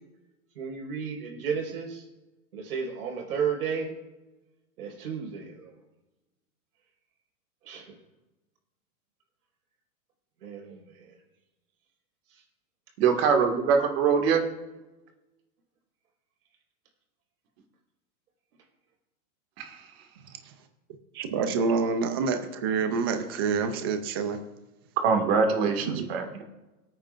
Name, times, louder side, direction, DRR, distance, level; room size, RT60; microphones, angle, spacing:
voice 1, 0.5-2.1 2.5-3.9 4.8-5.7 7.6-8.0 10.4-11.2 12.3-12.4, right 6 dB, 80° right, 1 dB, 4.5 m, -33 dB
voice 2, 13.0-14.4 19.6-19.8 25.0-26.4, right 6 dB, 40° right, 4 dB, 1.8 m, -23 dB
voice 3, 21.1-24.4 25.6-26.1, right 5 dB, 20° right, 7 dB, 0.4 m, -27 dB
23.5 x 8.9 x 2.5 m, 1.1 s
supercardioid pair, 160°, 44 cm